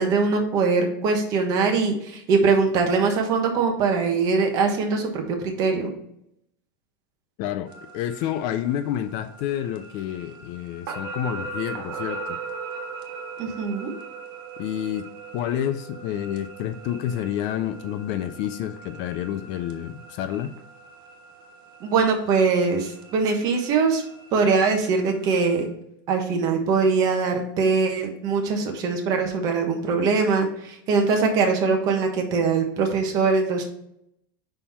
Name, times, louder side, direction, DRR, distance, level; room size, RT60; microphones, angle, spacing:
voice 1, 0.0-5.9 13.4-13.9 21.8-24.0 24.3-25.7 26.1-33.6, right 4 dB, 35° right, 3 dB, 1.2 m, -22 dB
voice 2, 7.4-12.4 14.6-15.1 15.3-20.5 27.3-27.4, left 11 dB, 40° left, 11 dB, 0.4 m, -29 dB
sound 1, 7.7-25.6, right 4 dB, 90° right, 1.4 m, -40 dB
5.5 x 4.3 x 5.6 m, 0.74 s
supercardioid pair, 170°, 11 cm